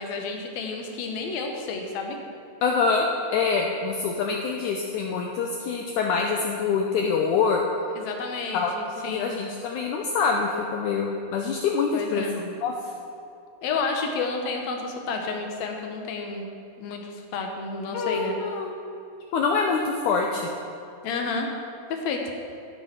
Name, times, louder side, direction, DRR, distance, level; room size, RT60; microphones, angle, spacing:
voice 1, 0.0-2.2 7.9-9.3 11.9-12.4 13.6-16.5 16.8-18.4 21.0-21.5 21.9-22.2, left 4 dB, 70° left, 3 dB, 1.8 m, -30 dB
voice 2, 2.6-7.6 8.5-12.7 17.9-18.8 19.3-20.5, left 5 dB, 85° left, 1 dB, 1.8 m, -25 dB
14.0 x 5.5 x 5.8 m, 2.7 s
omnidirectional pair, 4.3 m